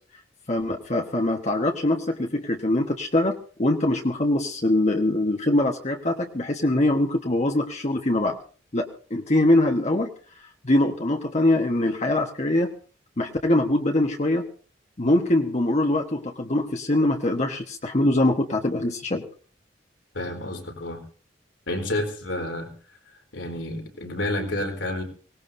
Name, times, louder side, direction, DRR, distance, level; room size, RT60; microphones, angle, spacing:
voice 1, 0.5-8.4 8.7-10.1 10.6-12.7 13.2-14.4 15.0-19.2, left 1 dB, 40° left, 2 dB, 1.3 m, -23 dB
voice 2, 20.1-21.0 21.7-22.7 23.3-25.0, left 1 dB, 85° left, 2 dB, 3.9 m, -29 dB
24.0 x 18.5 x 2.7 m, 0.41 s
head